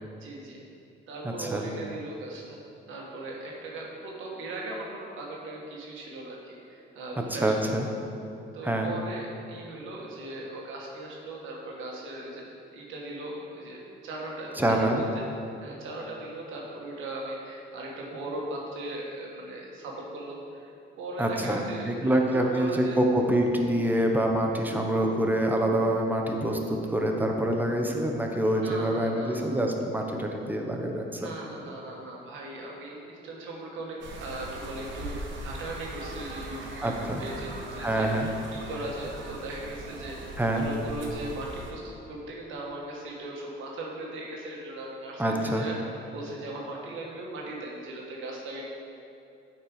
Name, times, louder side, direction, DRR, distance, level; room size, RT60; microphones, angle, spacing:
voice 1, 0.2-0.6 1.1-2.6 2.9-7.7 8.5-12.4 12.7-15.2 15.6-20.7 21.0-23.0 26.8-26.9 28.4-29.5 31.1-35.2 35.4-45.7 46.1-48.6, right 2 dB, 85° right, -2 dB, 1.5 m, -38 dB
voice 2, 7.3-7.9 8.6-8.9 14.6-15.0 21.2-31.3 36.8-37.2 37.8-38.3 40.4-40.7 45.2-45.6, right 1 dB, 10° right, 2 dB, 0.9 m, -26 dB
sound 1, 34.0-41.7, right 1 dB, 70° right, 1.2 m, -40 dB
8.6 x 4.5 x 4.9 m, 2.7 s
cardioid pair, 90°, 20 cm